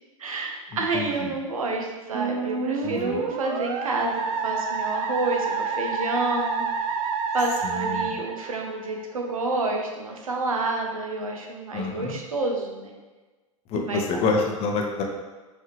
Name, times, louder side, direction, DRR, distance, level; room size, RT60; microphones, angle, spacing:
voice 1, 0.2-6.9 7.3-12.9 13.7-14.0, right 2 dB, 80° right, 1 dB, 0.7 m, -29 dB
voice 2, 0.7-1.3 2.8-3.2 7.6-8.1 11.7-12.1 13.7-15.0, left 3 dB, 35° left, 1 dB, 0.7 m, -28 dB
Musical instrument, 2.1-9.0, right 5 dB, 35° right, 0.4 m, -29 dB
4.8 x 2.7 x 3.0 m, 1.2 s
figure-of-eight pair, 90°, 18 cm